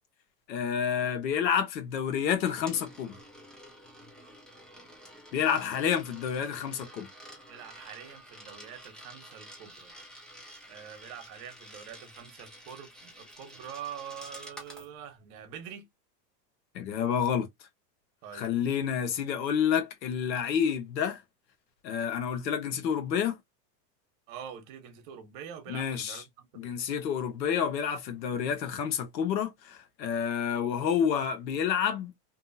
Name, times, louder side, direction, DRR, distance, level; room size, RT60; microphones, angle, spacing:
voice 1, 0.5-3.2 5.3-7.1 16.7-17.5 18.3-21.2 21.8-23.4 25.7-26.2 26.6-32.1, left 8 dB, 90° left, 1.0 m, -29 dB
Coin (dropping), 2.1-14.9, equal, ahead, 0.5 m, -50 dB
voice 2, 7.5-9.9 10.6-15.9 18.2-18.5 24.3-26.9, right 8 dB, 55° right, 1.0 m, -45 dB
2.7 x 2.3 x 2.5 m
supercardioid pair, 120°, 50 cm